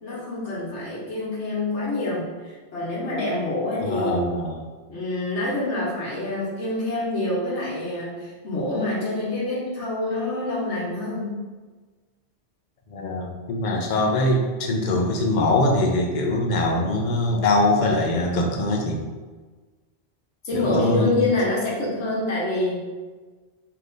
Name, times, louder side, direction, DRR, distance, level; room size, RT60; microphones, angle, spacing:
voice 1, 0.0-4.3 4.9-11.4 20.4-22.9, left 2 dB, 85° left, -6 dB, 1.4 m, -26 dB
voice 2, 3.8-4.6 12.9-19.0 20.5-21.3, left 2 dB, 50° left, 0 dB, 0.7 m, -22 dB
3.4 x 2.9 x 3.8 m, 1.3 s
omnidirectional pair, 1.1 m